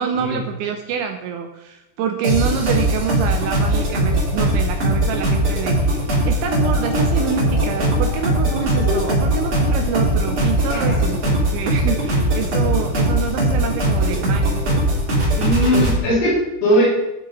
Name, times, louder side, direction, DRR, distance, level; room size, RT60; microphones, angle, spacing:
voice 1, 0.0-14.6, right 8 dB, 80° right, 4 dB, 2.7 m, -26 dB
sound 1, 2.2-16.0, right 1 dB, 35° right, 3.6 m, -20 dB
sound 2, 6.4-11.2, left 1 dB, 50° left, 3.4 m, -31 dB
voice 2, 15.3-16.8, equal, 80° left, -10 dB, 6.5 m, -19 dB
13.5 x 7.0 x 3.9 m, 0.96 s
omnidirectional pair, 6.0 m